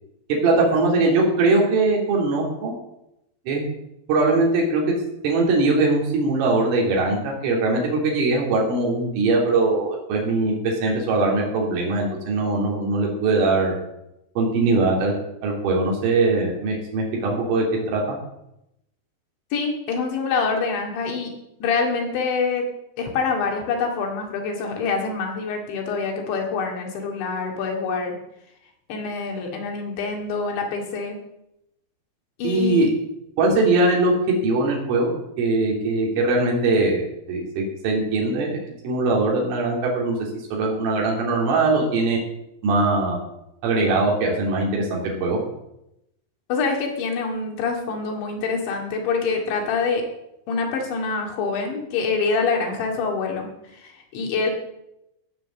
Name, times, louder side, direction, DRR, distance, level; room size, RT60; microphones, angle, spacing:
voice 1, 0.4-2.7 3.5-3.6 4.1-5.0 5.2-13.8 14.4-15.1 15.4-18.2 32.4-32.9 33.4-37.0 37.3-42.2 42.6-43.2 43.6-45.4, right 2 dB, 75° right, -2 dB, 5.2 m, -21 dB
voice 2, 19.5-21.3 21.6-22.6 23.0-28.2 28.9-31.2 32.4-32.9 46.5-50.1 50.5-54.5, left 4 dB, 65° left, 2 dB, 4.4 m, -25 dB
16.5 x 7.6 x 7.3 m, 0.85 s
omnidirectional pair, 5.8 m